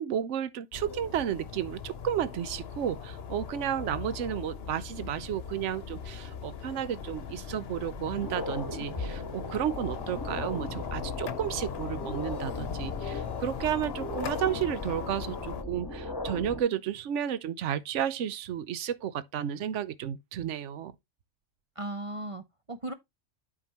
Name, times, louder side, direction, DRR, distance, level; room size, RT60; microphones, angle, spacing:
voice 1, 0.0-20.9, right 10 dB, 75° right, 1.0 m, -32 dB
sound 1, 0.7-15.6, left 7 dB, 55° left, 1.0 m, -39 dB
sound 2, 7.2-7.3 7.8-16.6, left 2 dB, 20° left, 1.5 m, -38 dB
voice 2, 21.8-22.9, right 1 dB, 35° right, 0.6 m, -37 dB
8.8 x 5.7 x 3.0 m
omnidirectional pair, 1.3 m